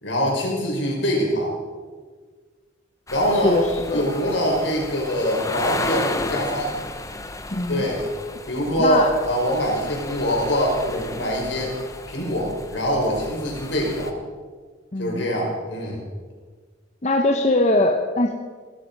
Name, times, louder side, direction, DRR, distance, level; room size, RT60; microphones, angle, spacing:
voice 1, 0.0-1.5 3.1-3.6 3.9-6.7 7.7-8.1 8.5-11.8 12.1-14.1 15.0-16.0, equal, 70° left, -1 dB, 5.2 m, -23 dB
sound 1, 3.1-14.1, left 2 dB, 15° left, 1.0 m, -33 dB
voice 2, 3.4-4.1 7.5-7.8 8.8-9.2 14.9-15.3 17.0-18.3, left 2 dB, 35° left, 4 dB, 0.9 m, -21 dB
17.0 x 13.5 x 5.4 m, 1.5 s
head